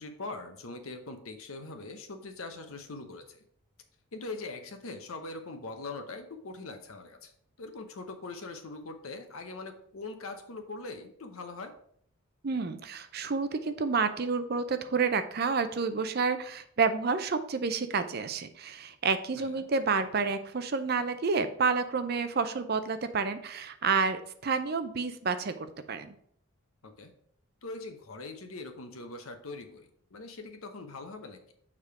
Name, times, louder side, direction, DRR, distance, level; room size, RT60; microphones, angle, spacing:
voice 1, 0.0-3.4 4.1-7.3 7.6-11.7 19.4-19.7 26.8-27.1 27.6-31.5, left 3 dB, 80° left, 7 dB, 0.9 m, -42 dB
voice 2, 12.4-26.1, right 5 dB, 45° right, 10 dB, 0.5 m, -29 dB
6.7 x 3.7 x 4.8 m, 0.66 s
head